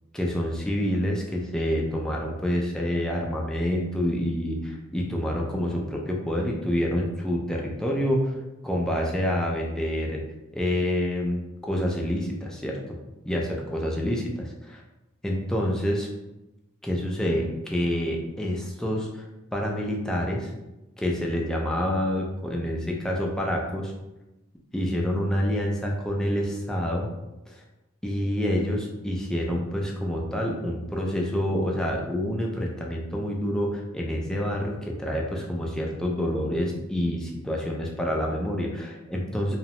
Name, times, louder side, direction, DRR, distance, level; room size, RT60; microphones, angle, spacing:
voice 1, 0.1-8.3 8.6-10.2 10.5-12.8 13.2-14.8 15.2-16.1 16.8-19.3 19.5-20.5 21.0-23.9 24.7-27.1 27.5-27.6 28.0-39.6, equal, 5° left, -2 dB, 0.3 m, -27 dB
2.7 x 2.0 x 2.9 m, 0.99 s
head